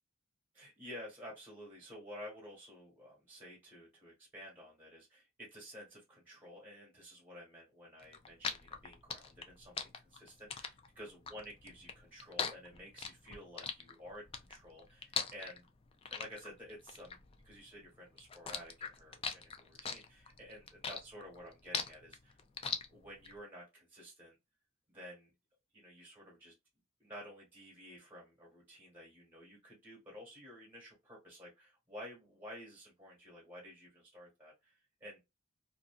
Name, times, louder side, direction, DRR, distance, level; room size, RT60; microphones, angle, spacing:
voice 1, 0.5-15.7 16.1-22.4 22.9-24.4 24.9-25.3 25.7-26.5 27.0-35.2, equal, 10° right, -4 dB, 1.2 m, -52 dB
sound 1, 8.0-17.9 18.2-23.3, left 6 dB, 25° left, 0.3 m, -40 dB
2.6 x 2.5 x 2.3 m, 0.24 s
head